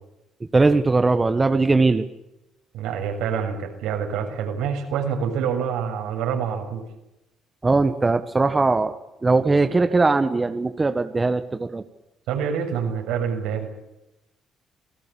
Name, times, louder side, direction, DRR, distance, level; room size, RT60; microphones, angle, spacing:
voice 1, 0.5-2.0 7.6-8.9 9.2-11.8, right 3 dB, 20° right, 8 dB, 1.6 m, -20 dB
voice 2, 2.7-6.8 12.3-13.7, right 7 dB, 85° right, 3 dB, 7.0 m, -26 dB
28.5 x 18.0 x 8.7 m, 0.92 s
cardioid pair, 85°, 0 cm